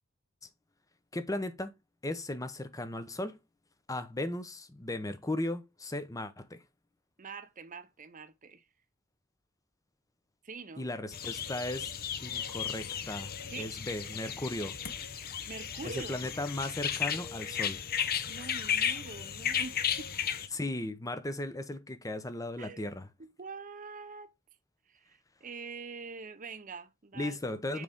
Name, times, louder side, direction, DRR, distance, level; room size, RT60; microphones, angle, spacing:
voice 1, 1.1-1.7 2.0-3.4 3.9-6.6 10.8-11.9 12.2-14.7 15.8-17.8 20.5-23.1 27.1-27.8, left 1 dB, 15° left, 0.7 m, -36 dB
voice 2, 7.2-8.6 10.4-11.0 13.5-13.8 15.5-16.3 18.3-20.1 22.6-22.9 23.2-24.3 24.9-27.8, right 4 dB, 40° right, 0.7 m, -45 dB
sound 1, 11.1-20.5, left 8 dB, 45° left, 0.8 m, -34 dB
6.6 x 5.0 x 3.5 m
head